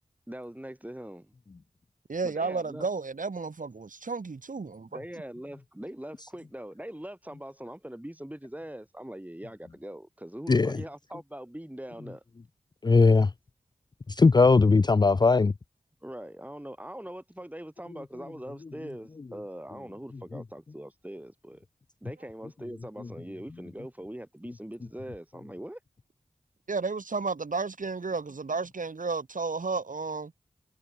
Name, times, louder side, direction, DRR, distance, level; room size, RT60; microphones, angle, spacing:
voice 1, 0.3-1.3 2.2-2.9 4.6-12.2 16.0-21.7 22.0-25.8, right 1 dB, 10° right, 5.6 m, -42 dB
voice 2, 2.1-4.9 26.7-30.3, right 4 dB, 65° right, 2.8 m, -32 dB
voice 3, 12.8-13.3 14.1-15.5, left 4 dB, 30° left, 0.4 m, -19 dB
cardioid pair, 45°, 14 cm